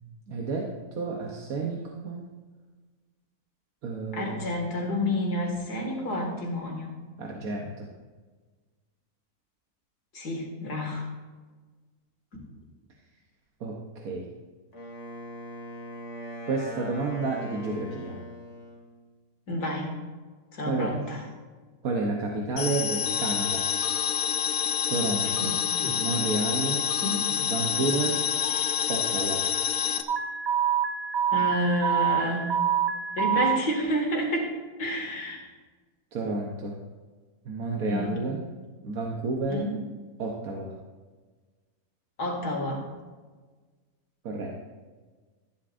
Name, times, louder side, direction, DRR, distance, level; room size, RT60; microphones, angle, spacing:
voice 1, 0.3-2.3 3.8-4.5 7.2-7.9 13.6-14.3 16.5-18.2 20.6-20.9 21.8-23.7 24.9-25.5 26.0-26.8 27.4-28.2 28.9-29.4 36.1-36.8 37.4-38.4 38.8-39.7 40.2-40.7 44.2-44.5, right 3 dB, 70° right, 0 dB, 1.5 m, -30 dB
voice 2, 4.1-7.0 10.1-11.1 19.5-20.0 20.5-21.2 25.2-25.9 27.0-27.3 31.3-32.7 33.2-34.5 34.8-35.5 37.9-38.2 39.5-39.8 42.2-42.9, left 1 dB, 85° left, 0 dB, 2.7 m, -30 dB
Wind instrument woodwind instrument, 14.7-18.9, equal, 50° left, 2.2 m, -40 dB
sound 1, 22.6-30.0, left 9 dB, 70° left, 1.1 m, -27 dB
Alarm, 30.1-33.6, right 8 dB, 30° right, 0.5 m, -26 dB
13.5 x 11.0 x 2.6 m, 1.4 s
omnidirectional pair, 1.6 m